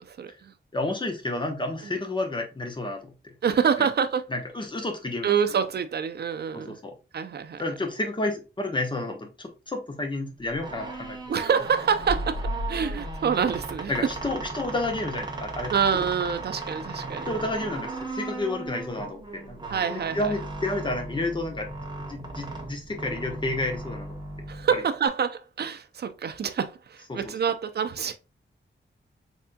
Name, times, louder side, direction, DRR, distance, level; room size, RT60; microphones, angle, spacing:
voice 1, 0.0-0.5 1.8-2.0 3.4-4.3 5.2-6.8 7.1-7.7 11.3-13.9 15.7-17.3 19.7-20.4 24.5-28.2, right 7 dB, 55° right, 0.5 m, -27 dB
voice 2, 0.7-3.1 3.8-3.9 4.3-5.7 6.5-6.9 7.6-11.2 13.9-15.7 17.3-19.6 19.9-24.1 27.1-27.3, left 2 dB, 25° left, 0.9 m, -31 dB
sound 1, 10.5-25.1, right 2 dB, 20° right, 0.9 m, -37 dB
sound 2, 12.0-15.7 16.0-16.1, left 1 dB, 90° left, 1.5 m, -36 dB
4.2 x 3.4 x 2.2 m
wide cardioid pair, 150°, 20 cm